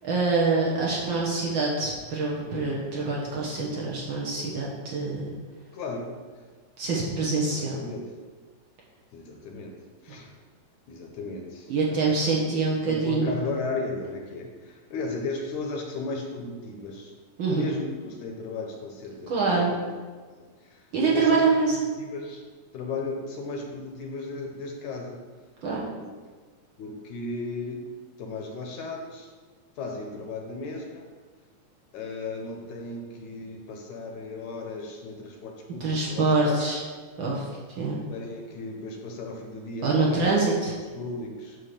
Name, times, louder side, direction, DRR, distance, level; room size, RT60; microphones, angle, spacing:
voice 1, 0.0-5.3 6.8-7.8 11.7-13.3 17.4-17.6 19.3-19.7 20.9-21.7 25.6-25.8 35.8-36.8 37.2-37.4 37.8-38.0 39.8-40.7, right 3 dB, 60° right, -4 dB, 1.3 m, -25 dB
voice 2, 5.7-6.1 7.5-8.1 9.1-9.7 10.0-10.3 10.9-12.2 12.5-17.1 17.5-19.8 20.4-22.4 22.7-25.2 26.0-26.1 26.8-27.8 28.2-29.3 29.8-31.1 31.9-36.8 37.8-40.3 40.7-41.6, left 3 dB, 75° left, 1 dB, 2.1 m, -35 dB
9.2 x 3.2 x 6.5 m, 1.4 s
omnidirectional pair, 3.7 m